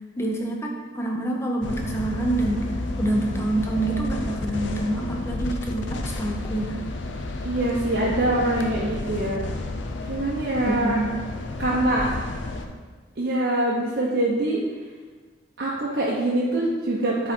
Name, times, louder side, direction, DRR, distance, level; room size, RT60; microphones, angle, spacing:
voice 1, 0.2-2.7 3.0-6.8 10.7-11.2, right 2 dB, 15° left, 0 dB, 0.7 m, -27 dB
sound 1, 1.6-12.7, left 2 dB, 80° left, 0.6 m, -31 dB
voice 2, 7.4-9.4 10.0-11.0 11.6-12.1 13.2-14.6 15.6-17.3, right 1 dB, 60° right, -5 dB, 0.8 m, -24 dB
7.7 x 3.9 x 4.4 m, 1.4 s
head